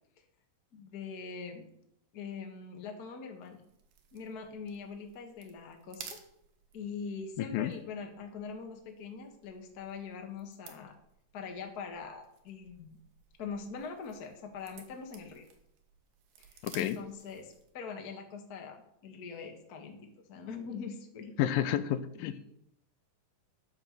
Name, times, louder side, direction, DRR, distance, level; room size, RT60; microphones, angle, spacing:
voice 1, 0.7-1.7 2.1-3.6 4.1-6.0 6.7-10.9 11.3-12.9 13.4-15.5 16.4-20.0 20.3-21.3 22.2-22.4, left 5 dB, 45° left, 3 dB, 1.3 m, -42 dB
sound 1, 3.4-17.8, right 7 dB, 80° right, 3.1 m, -56 dB
voice 2, 7.4-7.7 16.6-17.0 21.4-22.4, left 11 dB, 85° left, 12 dB, 2.5 m, -30 dB
10.0 x 7.1 x 6.7 m, 0.74 s
omnidirectional pair, 4.0 m